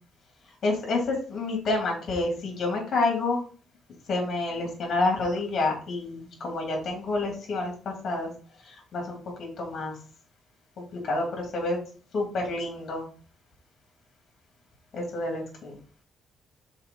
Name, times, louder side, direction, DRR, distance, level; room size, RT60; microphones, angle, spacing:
voice 1, 0.6-3.4 4.1-8.3 8.7-9.9 10.9-11.8 12.1-13.0 14.9-15.8, left 2 dB, 55° left, 0 dB, 2.9 m, -28 dB
5.5 x 4.6 x 5.6 m, 0.42 s
cardioid pair, 90°, 0 cm